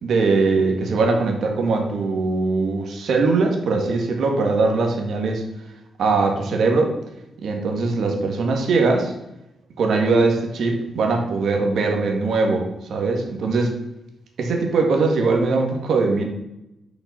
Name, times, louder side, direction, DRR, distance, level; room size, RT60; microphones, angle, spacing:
voice 1, 0.0-5.4 6.0-6.9 7.4-9.1 9.8-12.6 12.9-13.7 14.4-16.2, right 3 dB, 65° right, 3 dB, 1.8 m, -21 dB
6.9 x 5.9 x 6.9 m, 0.89 s
wide cardioid pair, 160°, 0 cm